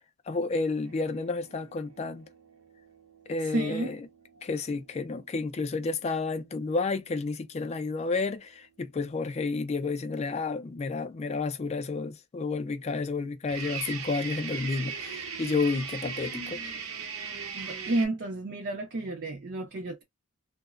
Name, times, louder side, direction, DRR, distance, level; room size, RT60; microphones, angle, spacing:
voice 1, 0.3-2.2 3.3-4.0 4.4-8.5 8.8-16.6, left 3 dB, 30° left, 0.3 m, -31 dB
sound 1, 0.8-6.5 13.5-18.1, right 6 dB, 90° right, 0.7 m, -40 dB
voice 2, 3.4-4.0 17.5-20.0, right 2 dB, 50° right, 0.5 m, -31 dB
2.8 x 2.1 x 2.4 m
head